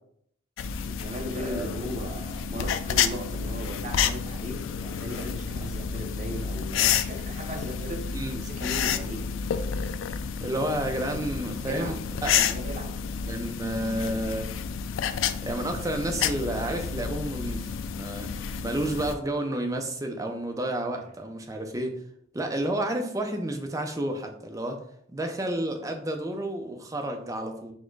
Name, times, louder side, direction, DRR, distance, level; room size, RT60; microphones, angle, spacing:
sound 1, 0.6-19.2, left 7 dB, 80° left, 0.3 m, -30 dB
voice 1, 0.8-9.3 11.6-12.0 12.4-12.9 21.0-21.1, equal, 40° right, 1 dB, 0.8 m, -37 dB
voice 2, 10.4-12.5 13.2-14.5 15.4-21.9 22.3-24.8 25.1-27.7, right 1 dB, 15° right, 3 dB, 0.5 m, -31 dB
4.3 x 2.2 x 4.5 m, 0.66 s
head